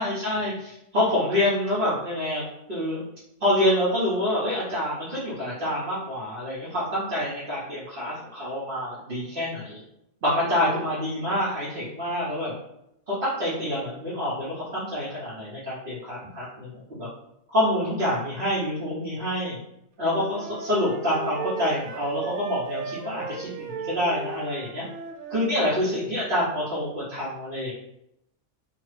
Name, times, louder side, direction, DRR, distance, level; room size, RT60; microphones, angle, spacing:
voice 1, 0.0-2.4 2.7-3.0 3.4-9.8 10.2-12.5 13.1-17.1 17.5-19.6 20.0-24.9 25.3-27.7, left 1 dB, 45° right, -9 dB, 0.9 m, -27 dB
Wind instrument woodwind instrument, 20.0-25.6, right 5 dB, 85° right, 1.0 m, -36 dB
2.7 x 2.3 x 3.2 m, 0.81 s
omnidirectional pair, 1.4 m